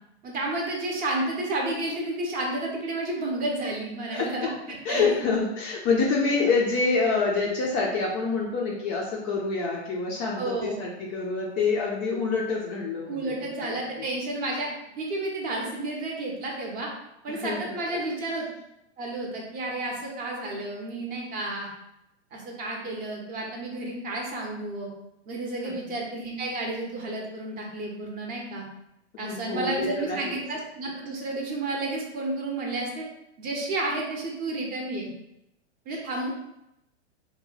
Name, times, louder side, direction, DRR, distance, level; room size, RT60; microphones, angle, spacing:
voice 1, 0.2-5.1 10.4-10.9 13.1-14.7 15.0-16.9 17.2-18.5 19.0-21.7 22.3-24.9 25.3-28.6 29.2-33.0 33.4-35.1 35.9-36.3, right 2 dB, 25° right, -1 dB, 0.6 m, -31 dB
voice 2, 4.1-4.5 4.8-13.2 13.6-14.1 17.3-17.7 25.6-25.7 29.1-30.3 35.9-36.0, left 4 dB, 30° left, -2 dB, 0.4 m, -27 dB
2.7 x 2.1 x 3.8 m, 0.85 s
hypercardioid pair, 140°, 35 cm